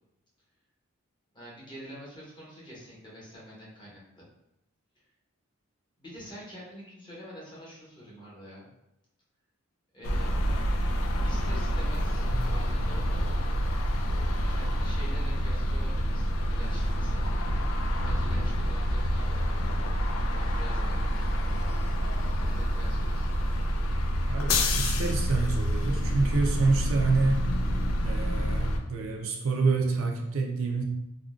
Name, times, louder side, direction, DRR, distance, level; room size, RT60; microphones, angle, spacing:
voice 1, 1.3-4.2 6.0-8.7 9.9-10.3 11.2-13.4 14.5-19.8 20.3-21.5 22.4-23.3, equal, 20° left, -6 dB, 0.9 m, -46 dB
sound 1, 10.0-28.8, equal, 70° left, 0.4 m, -27 dB
voice 2, 24.3-27.5 28.0-30.8, right 3 dB, 70° right, 2 dB, 0.5 m, -27 dB
3.6 x 2.2 x 2.4 m, 0.86 s
head